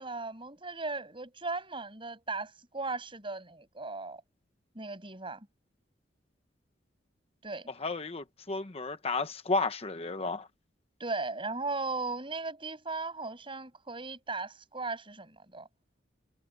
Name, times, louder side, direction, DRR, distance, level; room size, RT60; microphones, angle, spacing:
voice 1, 0.0-4.2 4.7-5.5 7.4-7.7 11.0-15.7, right 3 dB, 30° right, 7.2 m, -37 dB
voice 2, 7.8-10.5, left 3 dB, 35° left, 0.9 m, -32 dB
head